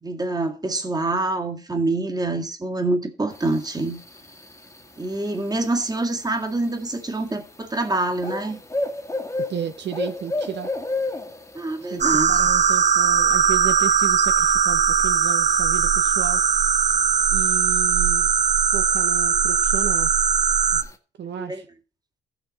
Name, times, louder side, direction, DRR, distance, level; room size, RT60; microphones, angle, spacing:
voice 1, 0.0-4.0 5.0-8.6 11.5-12.3 21.3-21.6, right 2 dB, 20° right, 2.0 m, -26 dB
sound 1, 3.3-21.0, left 2 dB, 15° left, 1.6 m, -36 dB
voice 2, 9.4-10.7 11.9-16.4 17.3-18.3 18.7-20.1 20.7-20.8 21.2-21.7, right 9 dB, 60° right, 1.0 m, -33 dB
sound 2, 12.0-20.8, right 7 dB, 35° right, 0.7 m, -19 dB
15.0 x 5.9 x 4.1 m
cardioid pair, 90°, 20 cm